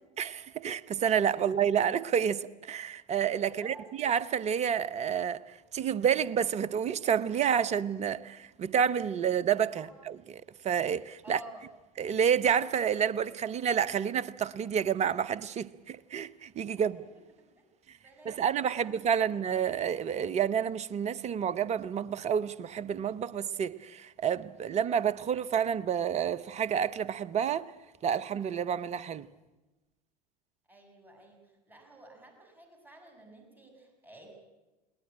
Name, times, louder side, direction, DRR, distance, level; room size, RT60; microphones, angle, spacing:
voice 1, 0.2-11.4 12.0-17.0 18.2-27.7 28.0-29.3, right 8 dB, 35° right, 0.9 m, -29 dB
voice 2, 3.4-3.9 9.8-9.9 11.2-11.6 16.8-17.1 17.4-17.5 18.0-19.3 30.7-34.3, right 1 dB, 10° right, 7.4 m, -52 dB
21.5 x 19.0 x 8.8 m
figure-of-eight pair, 75°, 20 cm